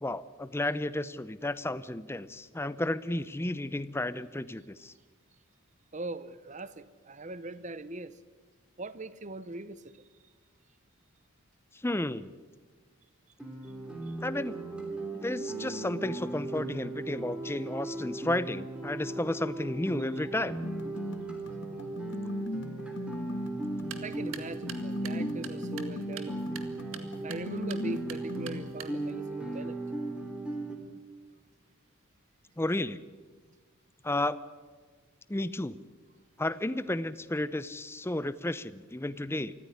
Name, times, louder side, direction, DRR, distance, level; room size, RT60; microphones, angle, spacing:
voice 1, 0.0-4.9 11.7-12.3 14.2-14.6 15.1-20.6 32.6-33.0 34.0-34.4 35.3-35.8 36.4-39.5, left 1 dB, 10° left, 0.6 m, -32 dB
voice 2, 5.9-8.2 8.8-10.0 24.0-26.4 27.2-29.8, right 2 dB, 35° right, 0.9 m, -41 dB
Guitar, 13.4-30.8, right 2 dB, 5° right, 3.1 m, -38 dB
sound 1, 20.6-28.6, left 1 dB, 55° left, 1.5 m, -39 dB
sound 2, 23.7-29.2, right 7 dB, 65° right, 1.9 m, -47 dB
24.5 x 14.5 x 9.8 m
head